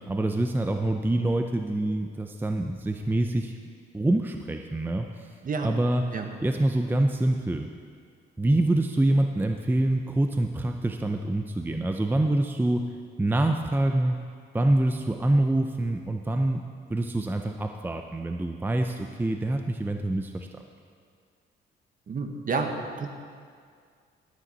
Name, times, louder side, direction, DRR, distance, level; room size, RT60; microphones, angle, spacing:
voice 1, 0.0-3.6 3.9-5.3 5.6-6.0 6.4-7.7 8.4-12.9 13.2-14.2 14.5-16.6 16.9-20.5, right 1 dB, 10° right, 5 dB, 0.5 m, -25 dB
voice 2, 22.1-23.1, right 4 dB, 45° right, 5 dB, 1.2 m, -30 dB
13.0 x 9.4 x 4.1 m, 2.1 s
cardioid pair, 90°, 20 cm